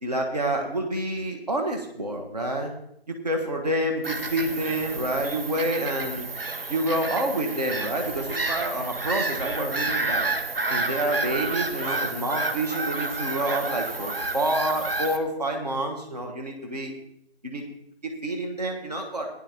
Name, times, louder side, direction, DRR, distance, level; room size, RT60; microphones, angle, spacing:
voice 1, 0.0-2.7 3.1-6.3 6.7-10.3 10.7-16.9 17.4-17.6 18.0-19.3, right 1 dB, 40° right, 2 dB, 1.4 m, -28 dB
Bird vocalization bird call bird song / Gull seagull, 4.0-15.2, right 2 dB, 60° right, 1.1 m, -30 dB
17.0 x 10.5 x 2.9 m, 0.76 s
figure-of-eight pair, 170°, 33 cm